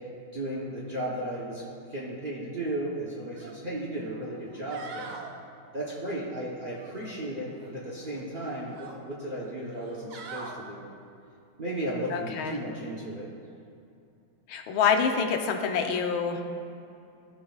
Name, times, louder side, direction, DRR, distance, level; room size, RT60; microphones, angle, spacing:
voice 1, 0.3-1.6 1.9-5.1 5.7-10.9 11.6-13.3, right 1 dB, 45° right, -4 dB, 0.6 m, -34 dB
sound 1, 3.3-3.5 3.9-4.0 4.5-5.3 6.7-7.7 8.1-9.0 9.7-10.6 12.3-12.4, right 5 dB, 80° right, 1.6 m, -44 dB
voice 2, 12.1-12.6 14.5-16.4, left 6 dB, 90° left, 4 dB, 1.6 m, -26 dB
16.0 x 5.7 x 2.4 m, 2.6 s
omnidirectional pair, 2.2 m